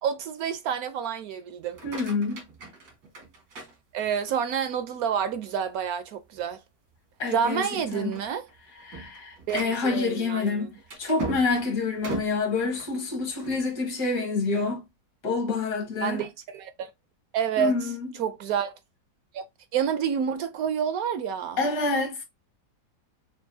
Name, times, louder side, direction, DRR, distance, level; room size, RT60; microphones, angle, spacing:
voice 1, 0.0-1.8 3.9-6.6 7.3-8.4 9.5-10.7 16.0-16.9 17.3-17.9 18.2-18.7 19.3-19.4 19.7-21.6, right 8 dB, 70° right, 0.9 m, -28 dB
sound 1, 1.6-4.4 4.9-5.4 5.8-5.9 6.3-6.5 7.2-7.5 7.8-13.7, right 3 dB, 85° right, 2.3 m, -40 dB
voice 2, 1.8-2.4 7.2-8.2 8.8-10.7 11.0-14.8 15.2-16.2 17.6-18.1 21.6-22.2, left 4 dB, 70° left, 1.9 m, -27 dB
6.2 x 2.5 x 2.6 m
omnidirectional pair, 1.8 m